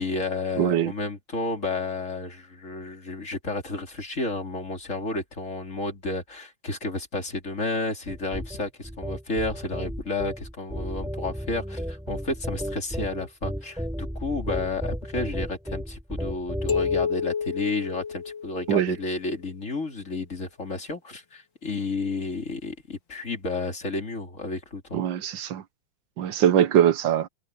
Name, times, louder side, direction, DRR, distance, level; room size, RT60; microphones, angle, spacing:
voice 1, 0.0-25.0, left 3 dB, 40° left, 3.3 m, -31 dB
voice 2, 0.6-0.9 18.7-18.9 24.9-25.6 26.2-27.3, right 10 dB, 75° right, 1.6 m, -22 dB
sound 1, 8.1-17.1, equal, ahead, 6.3 m, -33 dB
sound 2, 16.7-19.1, left 6 dB, 70° left, 2.7 m, -29 dB
omnidirectional pair, 2.1 m